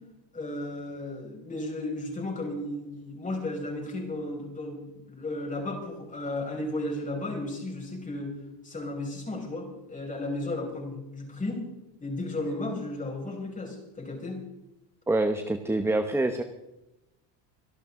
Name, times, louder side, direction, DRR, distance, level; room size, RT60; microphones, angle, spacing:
voice 1, 0.3-8.3 8.6-11.6 12.0-14.4, left 2 dB, 15° left, 1 dB, 5.8 m, -34 dB
voice 2, 15.1-16.4, right 2 dB, 5° right, 7 dB, 0.9 m, -26 dB
25.0 x 12.0 x 3.8 m, 0.92 s
cardioid pair, 140°, 45 cm